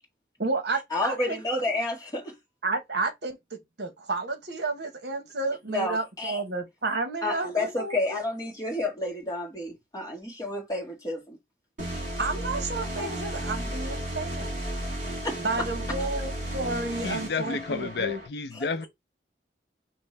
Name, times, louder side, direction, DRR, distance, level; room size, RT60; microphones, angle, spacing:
voice 1, 0.4-1.4 2.6-8.2 12.2-14.6 15.4-18.2, right 3 dB, 65° right, 1.0 m, -31 dB
voice 2, 0.9-2.3 5.7-6.4 7.2-11.4 13.0-13.2 15.2-15.7, left 2 dB, 20° left, 1.7 m, -30 dB
sound 1, 11.8-18.3, right 1 dB, 45° right, 2.5 m, -34 dB
voice 3, 17.0-18.9, left 4 dB, 65° left, 0.5 m, -31 dB
5.4 x 2.9 x 3.2 m
head